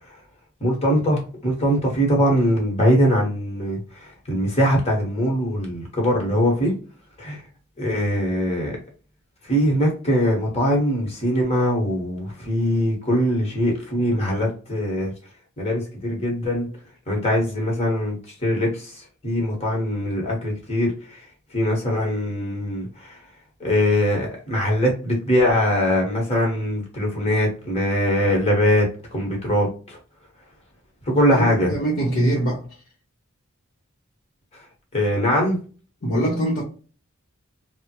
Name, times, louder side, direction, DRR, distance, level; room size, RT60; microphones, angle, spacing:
voice 1, 0.6-6.7 7.2-7.4 7.8-8.8 9.4-15.1 15.6-16.7 17.1-21.2 21.5-23.2 23.6-30.0 31.1-31.7 34.9-35.6, equal, 30° left, 1.3 m, -22 dB
voice 2, 31.3-32.6 36.0-36.6, right 1 dB, 50° left, 0.9 m, -23 dB
3.4 x 2.2 x 2.9 m
head